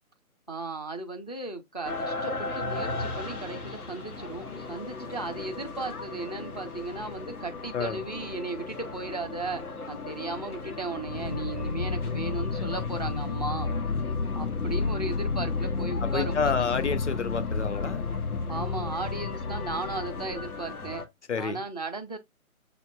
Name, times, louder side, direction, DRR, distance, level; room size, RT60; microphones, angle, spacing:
voice 1, 0.5-13.7 14.4-16.4 18.5-21.0 21.4-22.2, right 3 dB, 30° left, 0.5 m, -36 dB
sound 1, 1.8-21.1, left 3 dB, 85° left, 1.7 m, -38 dB
sound 2, 11.0-20.8, left 4 dB, 65° left, 0.7 m, -31 dB
voice 2, 16.0-18.0 21.3-21.6, left 5 dB, 50° left, 1.1 m, -29 dB
6.8 x 3.0 x 2.3 m
figure-of-eight pair, 165°, 44 cm